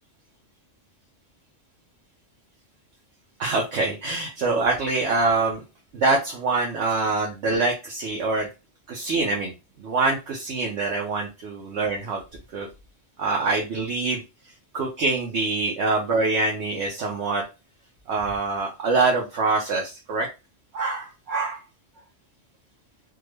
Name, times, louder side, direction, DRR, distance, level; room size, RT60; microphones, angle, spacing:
voice 1, 3.4-5.6 5.9-8.5 8.9-9.5 9.8-12.2 12.5-12.7 13.2-14.2 14.7-17.4 18.1-20.3 20.7-21.6, right 3 dB, 70° right, -1 dB, 1.0 m, -24 dB
3.6 x 2.0 x 3.2 m, 0.27 s
omnidirectional pair, 1.2 m